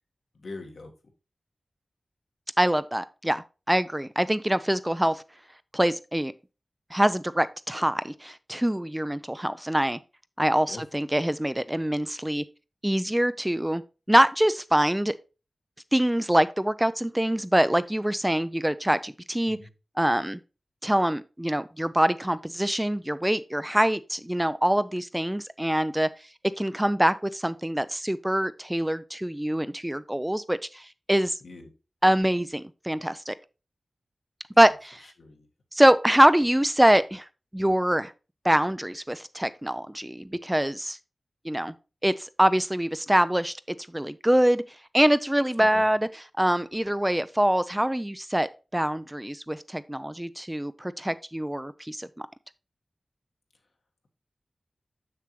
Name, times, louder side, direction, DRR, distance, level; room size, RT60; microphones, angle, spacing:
voice 1, 0.3-0.9 10.7-10.8 19.5-19.7 31.4-31.7 35.2-35.5 45.6-45.8, left 3 dB, 75° left, 1.6 m, -42 dB
voice 2, 2.6-5.2 5.7-6.3 6.9-10.0 10.4-12.4 12.8-13.8 14.1-15.1 15.9-19.6 20.0-20.4 20.8-26.1 26.6-31.4 32.0-33.3 34.6-35.0 35.7-37.3 37.5-38.1 38.4-41.0 41.4-41.7 42.0-44.6 44.9-52.1, right 1 dB, 10° right, 0.4 m, -24 dB
6.7 x 6.4 x 3.1 m
wide cardioid pair, 75°, 0 cm